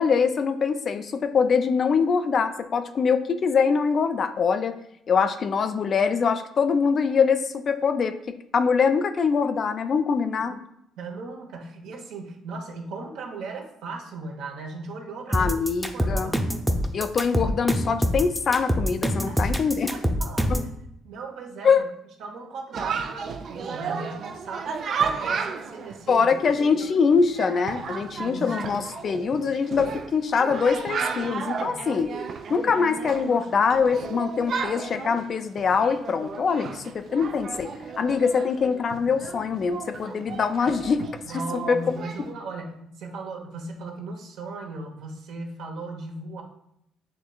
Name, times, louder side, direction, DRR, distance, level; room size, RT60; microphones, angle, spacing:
voice 1, 0.0-4.8 5.1-10.5 15.3-16.3 16.9-19.9 20.5-20.6 21.6-21.9 26.1-32.1 32.5-37.7 38.0-41.1 41.3-41.4 41.7-42.0, left 5 dB, 50° left, 8 dB, 0.4 m, -23 dB
voice 2, 11.0-15.5 15.9-16.5 19.3-20.7 21.0-21.8 22.2-26.3 26.8-26.9 28.2-28.7 31.7-31.8 41.2-46.4, right 3 dB, 75° right, 1 dB, 0.9 m, -37 dB
sound 1, 15.3-20.7, equal, ahead, 0.6 m, -24 dB
Chatter, 22.7-42.3, right 5 dB, 60° right, 0.4 m, -34 dB
6.6 x 3.1 x 2.3 m, 0.77 s
supercardioid pair, 65°, 0 cm